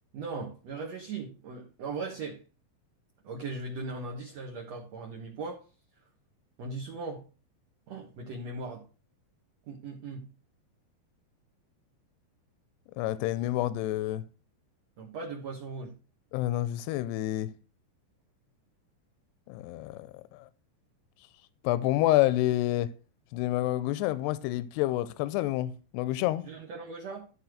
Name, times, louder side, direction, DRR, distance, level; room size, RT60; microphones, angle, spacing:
voice 1, 0.1-2.4 3.2-5.7 6.6-7.3 7.9-8.8 9.7-10.3 15.0-15.9 26.4-27.2, right 3 dB, 55° right, 2.0 m, -38 dB
voice 2, 13.0-14.2 16.3-17.5 19.5-20.5 21.6-22.9 23.3-26.4, left 15 dB, 85° left, 2.7 m, -28 dB
13.0 x 4.4 x 6.4 m
omnidirectional pair, 4.8 m